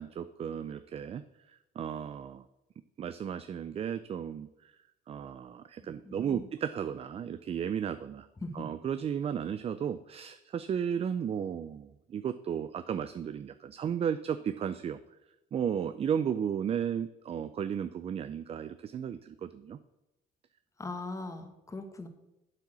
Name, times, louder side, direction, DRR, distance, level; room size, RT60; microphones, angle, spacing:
voice 1, 0.0-2.4 3.0-4.8 5.1-8.3 8.5-15.0 15.5-19.8, right 8 dB, 35° right, 12 dB, 0.4 m, -34 dB
voice 2, 6.0-6.5 8.4-8.7 20.8-22.1, left 2 dB, 20° left, 7 dB, 1.4 m, -40 dB
7.7 x 7.2 x 6.1 m, 0.93 s
cardioid pair, 110°, 17 cm